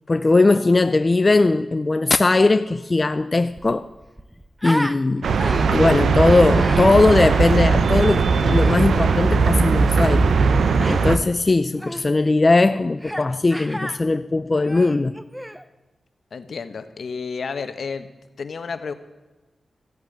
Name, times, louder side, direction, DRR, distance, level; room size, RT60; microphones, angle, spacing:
voice 1, 0.1-3.9 4.6-5.3 5.7-10.3 10.8-15.1, left 3 dB, 30° left, 0.5 m, -19 dB
Human voice, 3.0-3.1 3.4-5.0 5.4-5.9 6.5-7.0 8.4-8.9 10.8-11.2 11.8-12.0 13.0-13.3 13.5-14.0 14.5-15.6, equal, 5° right, 0.8 m, -32 dB
sound 1, 5.2-11.2, right 4 dB, 85° right, 0.8 m, -18 dB
voice 2, 16.3-18.1 18.4-18.9, left 5 dB, 65° left, 1.2 m, -31 dB
15.0 x 8.6 x 8.6 m
wide cardioid pair, 110°, 0 cm